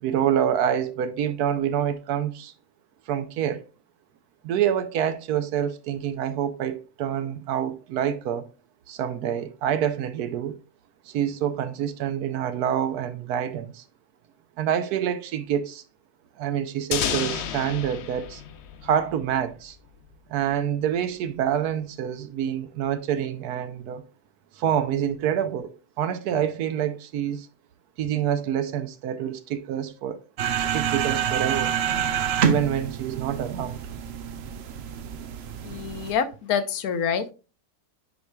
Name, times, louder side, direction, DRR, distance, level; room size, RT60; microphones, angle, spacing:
voice 1, 0.0-2.5 3.1-3.6 4.4-8.5 8.9-10.6 11.1-13.8 14.6-15.8 16.4-18.4 18.8-19.8 20.3-24.0 24.6-27.5 28.0-30.2 30.7-31.8 32.4-33.8, right 9 dB, 85° right, 1.2 m, -27 dB
sound 1, 16.9-19.7, left 8 dB, 60° left, 0.7 m, -31 dB
sound 2, 30.4-36.1, right 8 dB, 60° right, 0.7 m, -27 dB
voice 2, 35.6-37.3, left 7 dB, 75° left, 1.2 m, -26 dB
9.5 x 4.6 x 2.3 m
omnidirectional pair, 1.6 m